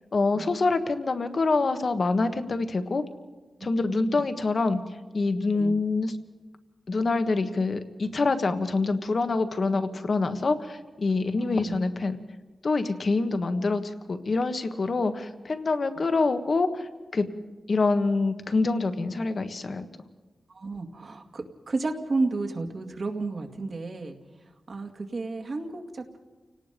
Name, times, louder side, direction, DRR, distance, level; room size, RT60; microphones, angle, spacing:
voice 1, 0.1-3.0 3.6-6.1 6.9-12.2 12.6-17.3 17.7-19.8, left 3 dB, 55° left, 9 dB, 1.5 m, -26 dB
voice 2, 3.9-4.2 5.5-5.7 11.4-11.8 20.5-26.2, right 3 dB, 60° right, 4 dB, 2.2 m, -32 dB
29.5 x 18.0 x 5.2 m, 1.2 s
cardioid pair, 70°, 0 cm